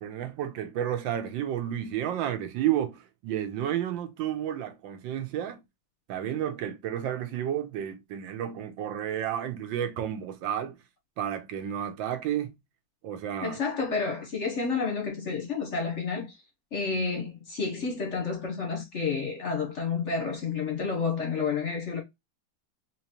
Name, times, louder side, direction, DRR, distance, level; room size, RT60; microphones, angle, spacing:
voice 1, 0.0-5.6 6.1-10.8 11.2-12.5 13.0-13.6, right 10 dB, 75° right, 1.4 m, -31 dB
voice 2, 13.4-16.4 16.7-22.0, left 5 dB, 50° left, 0.9 m, -30 dB
3.8 x 3.0 x 2.8 m
omnidirectional pair, 2.1 m